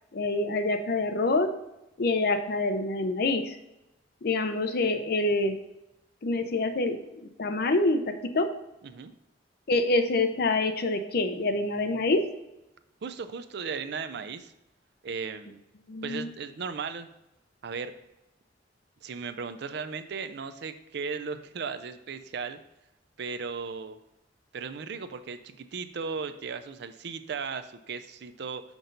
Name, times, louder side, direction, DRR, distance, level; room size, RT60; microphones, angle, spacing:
voice 1, 0.1-1.5 2.0-3.6 4.2-5.6 6.2-7.0 7.4-8.5 9.7-12.3 15.9-16.3, left 2 dB, 55° left, 8 dB, 0.6 m, -26 dB
voice 2, 13.0-14.5 15.0-15.6 16.0-17.1 17.6-17.9 19.0-22.6 23.2-24.0 24.5-28.6, right 5 dB, 60° right, 11 dB, 0.5 m, -36 dB
6.0 x 5.2 x 3.9 m, 0.91 s
head